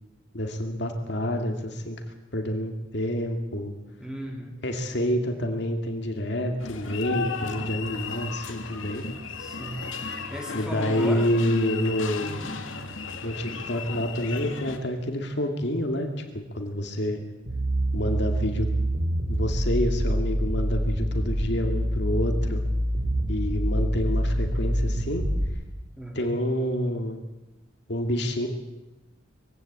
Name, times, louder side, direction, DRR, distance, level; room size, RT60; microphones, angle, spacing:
voice 1, 0.3-2.0 2.3-3.7 4.6-9.0 10.5-12.5 13.2-16.1 16.3-17.2 17.9-18.7 19.3-22.6 23.3-25.2 26.1-27.2 27.9-28.5, equal, 60° left, 4 dB, 2.4 m, -28 dB
voice 2, 4.0-4.6 9.4-9.9 10.3-11.3 12.2-12.5 26.0-26.3, equal, 5° right, 1 dB, 3.4 m, -36 dB
sound 1, 6.6-14.8, left 5 dB, 90° left, 2.4 m, -35 dB
sound 2, 17.4-25.4, equal, 85° right, 5.0 m, -26 dB
22.5 x 16.5 x 8.4 m, 1.0 s
head